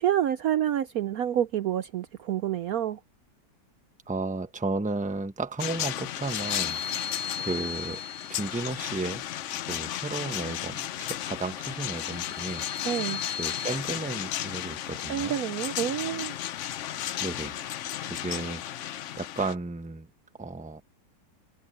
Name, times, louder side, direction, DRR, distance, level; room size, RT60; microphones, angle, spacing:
voice 1, 0.0-3.0 12.8-13.2 15.1-16.3, right 11 dB, 65° right, 1.0 m, -28 dB
voice 2, 4.1-8.0 8.3-9.3 9.7-12.7 13.4-15.4 17.2-17.6 18.0-20.1 20.4-20.8, right 3 dB, 5° right, 0.8 m, -34 dB
sound 1, 5.6-19.5, left 12 dB, 75° left, 0.7 m, -34 dB
sound 2, 6.1-8.7 11.7-13.8, left 6 dB, 40° left, 3.1 m, -37 dB
Wind instrument woodwind instrument, 11.3-19.4, left 1 dB, 60° left, 5.5 m, -57 dB
omnidirectional pair, 1.9 m